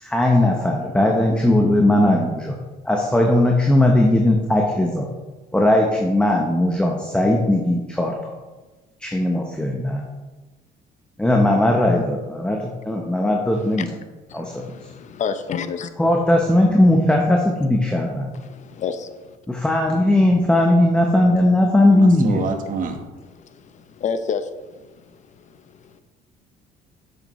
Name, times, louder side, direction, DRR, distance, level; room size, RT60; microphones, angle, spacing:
voice 1, 0.0-2.6 2.8-5.1 5.5-8.3 9.0-10.1 11.2-12.6 12.8-13.9 14.3-14.7 16.0-18.3 19.5-22.6, left 1 dB, 5° left, 0 dB, 0.9 m, -18 dB
voice 2, 14.3-15.9 18.3-19.4 23.2-26.0, left 6 dB, 45° left, 10 dB, 0.7 m, -31 dB
voice 3, 21.9-23.0, right 4 dB, 50° right, 5 dB, 1.2 m, -26 dB
8.3 x 6.6 x 3.1 m, 1.2 s
cardioid pair, 110°, 17 cm